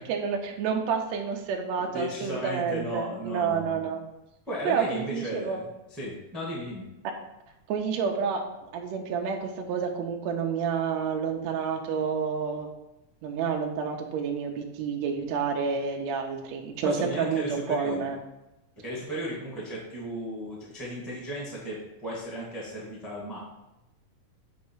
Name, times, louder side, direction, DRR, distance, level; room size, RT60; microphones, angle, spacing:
voice 1, 0.1-4.0 4.6-5.6 7.0-7.1 7.7-8.4 8.7-12.7 13.2-18.2, right 6 dB, 85° right, 2 dB, 1.5 m, -29 dB
voice 2, 1.9-3.8 4.5-6.9 16.8-18.1 18.8-23.4, equal, ahead, -5 dB, 0.8 m, -35 dB
8.3 x 3.1 x 4.6 m, 0.95 s
omnidirectional pair, 3.8 m